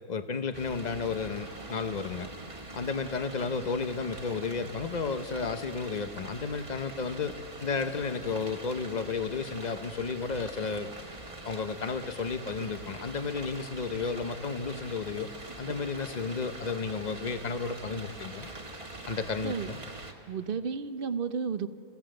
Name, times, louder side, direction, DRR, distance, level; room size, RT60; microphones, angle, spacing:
voice 1, 0.1-2.3 2.7-7.4 7.6-10.9 11.4-15.3 15.6-18.5 19.1-19.8, left 5 dB, 40° left, 10 dB, 0.8 m, -33 dB
sound 1, 0.5-20.1, right 2 dB, 25° right, 1.5 m, -44 dB
voice 2, 20.3-21.7, right 6 dB, 50° right, 11 dB, 0.8 m, -32 dB
27.5 x 16.5 x 7.7 m, 2.6 s
omnidirectional pair, 1.4 m